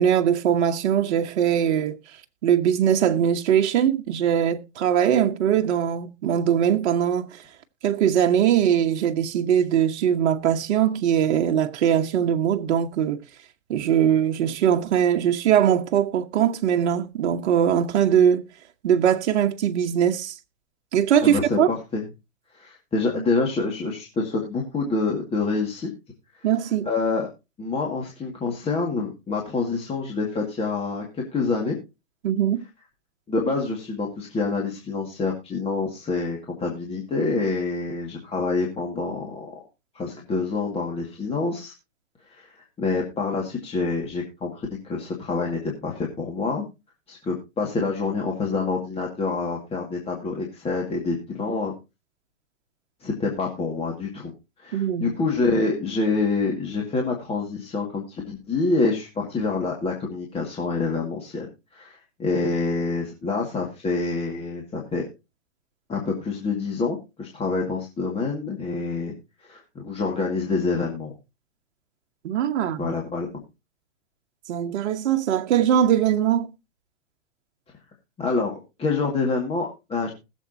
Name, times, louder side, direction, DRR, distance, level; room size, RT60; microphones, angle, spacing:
voice 1, 0.0-2.0 2.4-7.4 7.8-13.2 13.7-18.4 18.8-20.4 20.9-21.7 26.4-26.9 32.2-32.6 54.7-55.1 72.2-72.9 74.5-76.5, right 9 dB, 60° right, 1.2 m, -21 dB
voice 2, 21.2-22.0 22.5-25.9 26.8-27.3 27.6-31.8 33.3-39.6 39.9-41.7 42.3-46.7 47.1-51.7 53.0-54.3 54.6-61.5 61.7-65.1 65.9-69.1 69.5-71.1 72.8-73.4 78.2-80.1, left 3 dB, 15° left, 2.1 m, -27 dB
20.5 x 7.3 x 2.8 m
hypercardioid pair, 140°, 39 cm